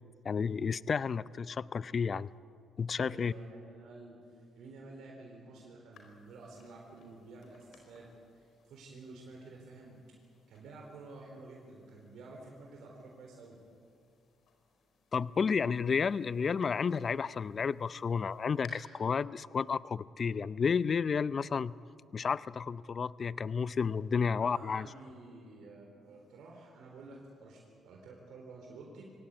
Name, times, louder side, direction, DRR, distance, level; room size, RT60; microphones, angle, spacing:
voice 1, 0.2-2.3 2.8-3.3 15.1-21.7 22.1-24.9, left 6 dB, 45° left, 18 dB, 0.5 m, -31 dB
voice 2, 3.1-8.1 8.3-10.0 10.5-13.6 24.3-29.0, right 3 dB, 80° right, 0 dB, 3.9 m, -51 dB
sound 1, 5.9-18.7, left 6 dB, 70° left, 4.5 m, -64 dB
23.0 x 17.5 x 9.6 m, 2.3 s
cardioid pair, 90°, 0 cm